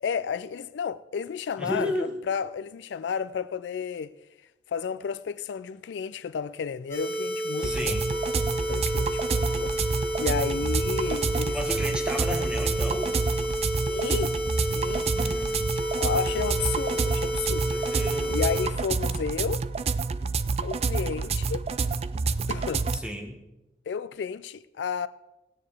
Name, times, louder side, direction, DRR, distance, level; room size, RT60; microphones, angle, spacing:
voice 1, 0.0-4.1 4.7-8.0 8.7-9.7 10.2-11.6 13.9-14.4 14.7-15.1 16.0-17.9 18.3-19.6 20.6-21.6 22.5-22.9 23.9-25.1, left 6 dB, 75° left, 0.3 m, -32 dB
voice 2, 1.6-2.1 7.6-8.1 11.5-13.2 15.1-15.7 17.6-18.4 22.9-23.4, left 1 dB, 5° right, 1.2 m, -33 dB
sound 1, 6.9-18.7, right 1 dB, 15° left, 2.1 m, -30 dB
sound 2, 7.6-23.0, right 4 dB, 35° right, 0.3 m, -28 dB
16.5 x 9.5 x 3.3 m
head